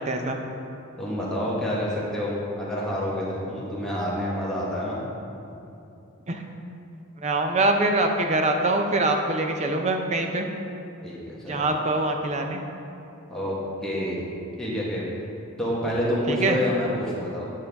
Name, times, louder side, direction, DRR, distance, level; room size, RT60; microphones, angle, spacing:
voice 1, 0.1-0.4 6.3-6.4 7.2-10.5 11.5-12.6 16.3-16.6, right 2 dB, 30° right, 4 dB, 0.5 m, -24 dB
voice 2, 1.0-5.0 11.0-11.6 13.3-13.5 13.8-14.2 14.6-15.0 15.6-17.5, left 1 dB, 5° left, -7 dB, 1.1 m, -28 dB
8.9 x 5.5 x 3.4 m, 2.7 s
head